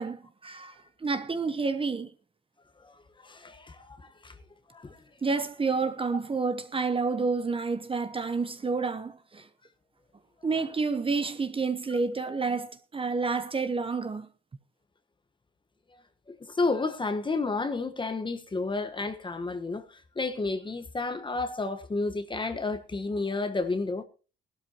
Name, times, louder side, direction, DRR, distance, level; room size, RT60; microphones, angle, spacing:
voice 1, 0.0-2.1 5.2-9.5 10.4-14.3, right 4 dB, 25° right, 1.1 m, -29 dB
voice 2, 2.8-4.3 4.7-5.0 16.3-24.0, left 3 dB, 25° left, 1.3 m, -31 dB
17.5 x 12.5 x 3.0 m
cardioid pair, 90°, 20 cm